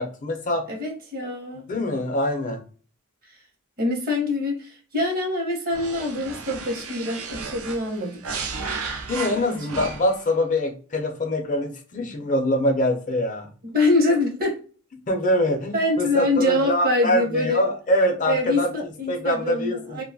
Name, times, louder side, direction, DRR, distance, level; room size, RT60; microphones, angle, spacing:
voice 1, 0.0-0.7 1.7-2.6 9.1-13.5 15.1-18.7 19.1-20.0, left 1 dB, 40° left, 0.5 m, -24 dB
voice 2, 0.7-1.6 3.8-8.3 9.3-9.6 13.6-14.6 15.5-17.6 18.3-20.0, left 1 dB, 45° right, 0.8 m, -25 dB
sound 1, 5.7-10.3, right 4 dB, 80° right, 0.5 m, -34 dB
2.5 x 2.2 x 2.6 m
head